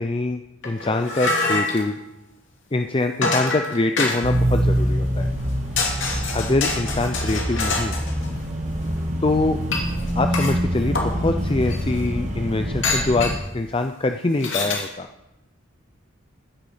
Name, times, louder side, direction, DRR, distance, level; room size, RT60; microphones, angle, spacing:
voice 1, 0.0-2.0 2.7-5.3 6.3-8.0 9.2-9.6 10.1-15.1, left 2 dB, 25° left, 7 dB, 0.5 m, -24 dB
sound 1, 0.6-1.8 3.2-4.4 5.4-5.5 5.8-8.3 9.7-10.5 10.9-11.1 11.7-11.8 12.8-13.4 14.4-14.8, left 3 dB, 60° left, 2.5 m, -25 dB
sound 2, 4.2-13.4, equal, 35° right, 1.8 m, -25 dB
14.5 x 10.0 x 5.1 m, 0.92 s
head